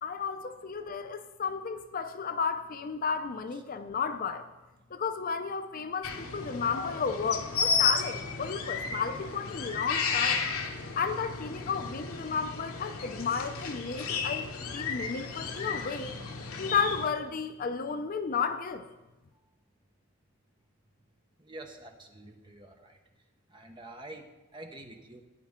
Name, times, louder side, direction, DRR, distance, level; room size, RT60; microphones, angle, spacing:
voice 1, 0.0-4.5 4.9-10.5 11.0-14.5 14.7-16.1 16.6-18.9, left 5 dB, 40° left, 9 dB, 0.4 m, -33 dB
sound 1, 6.0-17.1, left 5 dB, 80° left, 1.0 m, -33 dB
voice 2, 21.4-23.0 23.5-24.2 24.5-25.2, right 2 dB, 20° right, 4 dB, 0.9 m, -47 dB
13.0 x 9.1 x 3.6 m, 1.1 s
head